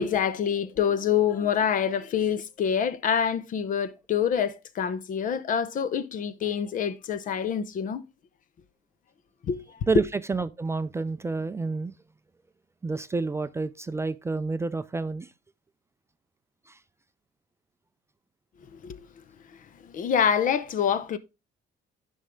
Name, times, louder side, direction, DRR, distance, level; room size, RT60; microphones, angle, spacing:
voice 1, 0.0-8.0 9.4-9.6 18.7-19.1 19.8-21.2, left 8 dB, 50° left, 0.8 m, -26 dB
voice 2, 10.3-11.9 12.8-15.3 16.7-16.8, right 3 dB, 15° right, 0.4 m, -29 dB
9.9 x 5.5 x 3.6 m
cardioid pair, 110°, 17 cm